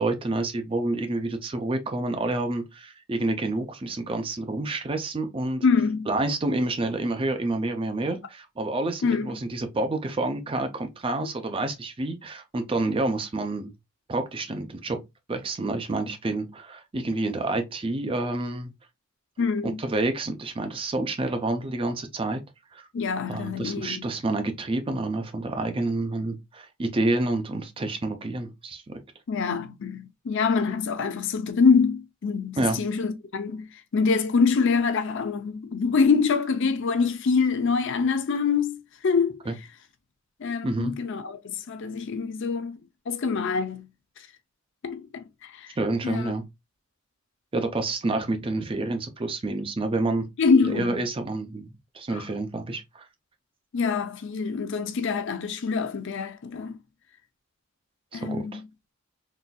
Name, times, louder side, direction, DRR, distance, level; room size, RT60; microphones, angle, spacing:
voice 1, 0.0-5.6 6.1-13.7 14.1-15.0 15.3-18.7 19.6-22.4 22.7-22.9 23.3-29.0 32.6-32.8 39.5-39.6 40.6-41.0 45.8-46.4 47.5-50.2 50.7-53.0 58.1-58.6, right 2 dB, 25° right, 0.4 m, -28 dB
voice 2, 5.6-6.1 9.0-9.3 19.4-19.8 22.9-24.1 29.3-39.4 40.4-42.8 43.1-43.9 44.8-45.8 46.0-46.3 50.4-51.0 52.1-52.2 53.7-56.8 58.1-58.7, left 5 dB, 55° left, 0.5 m, -25 dB
3.9 x 2.5 x 2.3 m
head